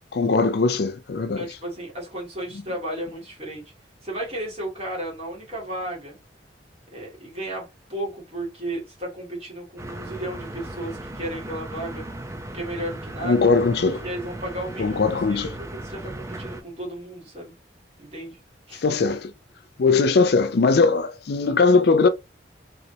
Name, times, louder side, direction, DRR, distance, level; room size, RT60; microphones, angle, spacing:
voice 1, 0.1-1.4 13.2-14.0 14.8-15.5 18.8-19.3 19.8-22.1, left 4 dB, 55° left, 0.4 m, -20 dB
voice 2, 1.4-3.7 4.0-6.2 6.9-12.0 12.5-13.4 14.0-17.5 18.0-18.4 18.7-18.8, right 1 dB, 35° right, 2.2 m, -34 dB
sound 1, 9.8-16.6, right 1 dB, 15° right, 0.5 m, -37 dB
3.9 x 3.2 x 2.8 m
head